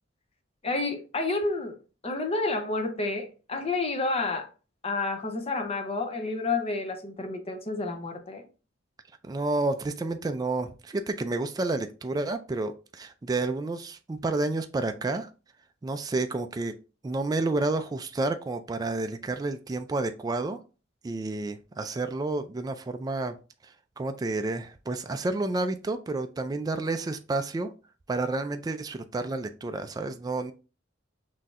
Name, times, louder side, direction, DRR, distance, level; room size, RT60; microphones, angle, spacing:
voice 1, 0.6-1.7 2.0-4.5 4.8-8.5, left 3 dB, 30° left, 0.6 m, -30 dB
voice 2, 9.2-15.3 15.8-16.8 17.0-20.6 21.0-23.4 23.6-27.7 28.1-30.5, right 2 dB, 20° right, 0.3 m, -30 dB
5.8 x 2.7 x 2.4 m
head